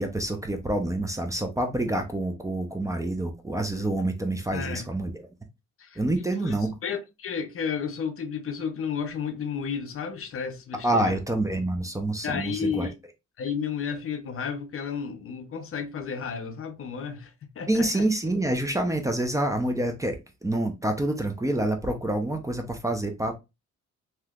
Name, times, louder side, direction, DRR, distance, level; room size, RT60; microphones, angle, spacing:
voice 1, 0.0-5.1 6.0-6.7 10.8-12.9 17.7-23.4, right 1 dB, 10° right, 0.5 m, -27 dB
voice 2, 4.5-4.9 5.8-6.6 6.8-11.1 12.2-13.0 13.4-18.0, left 6 dB, 45° left, 0.6 m, -32 dB
3.1 x 2.8 x 2.3 m
cardioid pair, 90°, 30 cm